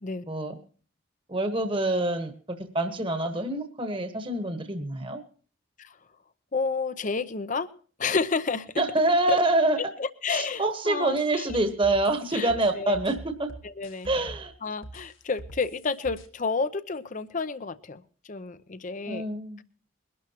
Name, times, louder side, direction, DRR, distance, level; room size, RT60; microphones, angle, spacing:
voice 1, 0.3-0.6 1.3-5.2 8.8-9.8 10.3-13.5 14.0-14.5 19.1-19.6, right 2 dB, 25° right, 6 dB, 1.2 m, -26 dB
voice 2, 6.5-7.7 8.0-8.7 9.3-9.4 9.8-11.6 12.3-13.0 13.6-14.1 14.6-18.0 18.3-19.2, left 4 dB, 35° left, 13 dB, 0.6 m, -30 dB
sound 1, 11.2-14.5 14.8-16.3, right 1 dB, 65° left, 1.7 m, -44 dB
22.0 x 12.0 x 2.9 m, 0.42 s
head